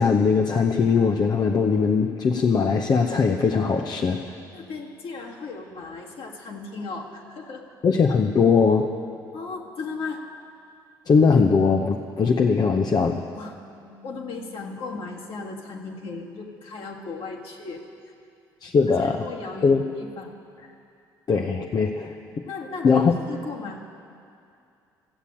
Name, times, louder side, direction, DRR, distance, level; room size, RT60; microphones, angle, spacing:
voice 1, 0.0-4.2 7.8-8.9 11.1-13.2 18.6-19.3 19.6-19.8 21.3-22.1 22.8-23.1, left 5 dB, 35° left, 4 dB, 0.7 m, -20 dB
voice 2, 4.5-7.7 9.3-10.2 13.3-17.8 19.0-20.3 22.5-23.8, left 4 dB, 55° left, 0 dB, 1.9 m, -36 dB
14.5 x 8.3 x 8.8 m, 2.5 s
figure-of-eight pair, 50°, 11 cm